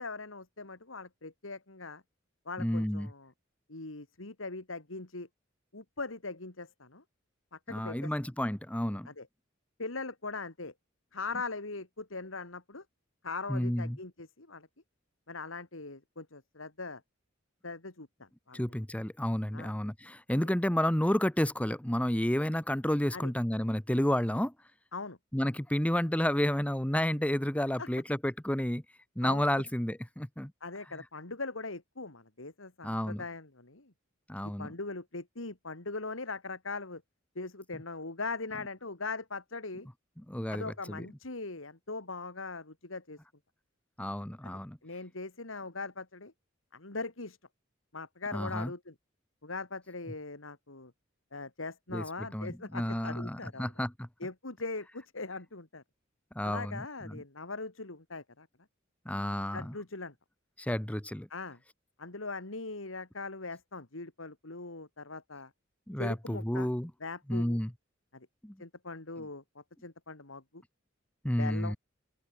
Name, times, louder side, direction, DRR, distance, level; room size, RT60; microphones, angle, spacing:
voice 1, 0.0-2.0 2.5-3.3 3.7-5.3 5.7-7.0 7.5-8.1 9.1-9.3 9.8-10.7 11.1-12.8 13.2-14.7 15.3-17.0 17.6-18.6 19.5-19.7 23.1-23.3 24.9-25.2 27.8-27.9 29.2-29.4 30.6-33.9 34.4-37.0 37.3-39.9 40.5-43.2 44.4-44.5 44.8-46.3 46.7-47.4 47.9-48.9 49.4-50.9 51.3-53.7 54.2-55.8 56.4-58.5 59.5-60.1 61.3-61.6 62.0-65.5 66.0-66.7 67.0-67.6 68.1-68.3 68.6-70.6 71.4-71.7, left 3 dB, 80° left, 2.7 m, -40 dB
voice 2, 2.6-3.1 7.7-9.1 13.5-14.0 18.5-24.5 25.3-28.8 29.2-30.5 32.8-33.2 34.3-34.7 40.3-41.1 44.0-44.8 48.3-48.7 51.9-54.1 56.3-57.2 59.0-59.7 60.6-61.3 65.9-66.9 67.3-67.7 68.4-68.5 71.2-71.8, equal, 5° left, 1.1 m, -31 dB
open air
head